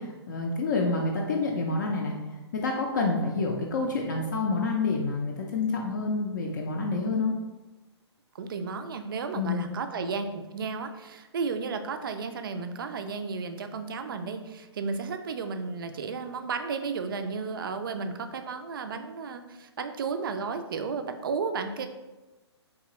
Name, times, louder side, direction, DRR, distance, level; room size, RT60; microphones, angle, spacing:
voice 1, 0.0-2.1 2.5-7.3 9.3-9.7, left 3 dB, 40° left, 0 dB, 0.4 m, -28 dB
voice 2, 8.4-21.9, right 5 dB, 50° right, 7 dB, 0.4 m, -33 dB
3.6 x 2.9 x 2.9 m, 1.1 s
figure-of-eight pair, 125°, 15 cm